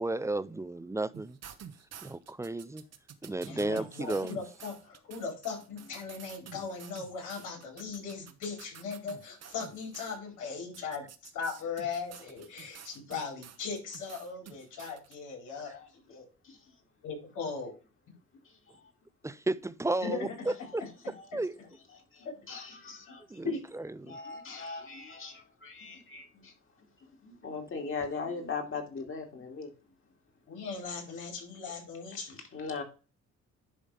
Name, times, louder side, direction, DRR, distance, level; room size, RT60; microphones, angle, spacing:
voice 1, 0.0-1.4 2.0-2.8 3.2-4.3 19.2-20.8 21.3-21.6 23.3-23.5 24.0-24.2, right 2 dB, 10° right, 0.4 m, -33 dB
sound 1, 1.1-10.2 10.7-15.1, right 8 dB, 55° right, 1.0 m, -50 dB
voice 2, 3.5-16.3 17.0-17.7 20.0-20.5 20.8-21.7 23.4-23.6 30.5-32.4, left 5 dB, 85° left, 4.6 m, -39 dB
voice 3, 22.1-23.2 24.0-26.5 27.0-29.7 32.5-32.8, left 4 dB, 45° left, 2.8 m, -39 dB
11.0 x 3.7 x 5.0 m
cardioid pair, 90°, 30 cm